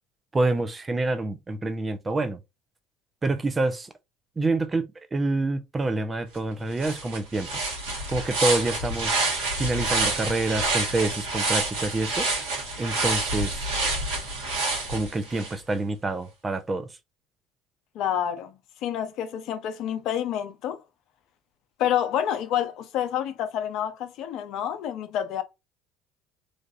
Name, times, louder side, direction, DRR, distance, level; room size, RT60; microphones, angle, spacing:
voice 1, 0.3-2.4 3.2-3.9 4.4-7.6 8.1-9.2 9.6-12.3 12.8-13.7 14.9-16.9, right 2 dB, 25° right, 0.6 m, -27 dB
sound 1, 6.4-6.5 6.8-15.5, right 2 dB, 85° right, 1.5 m, -28 dB
voice 2, 17.9-18.5 18.8-20.8 21.8-25.4, left 10 dB, 65° left, 0.6 m, -28 dB
3.3 x 2.4 x 2.5 m
hypercardioid pair, 75°, 0 cm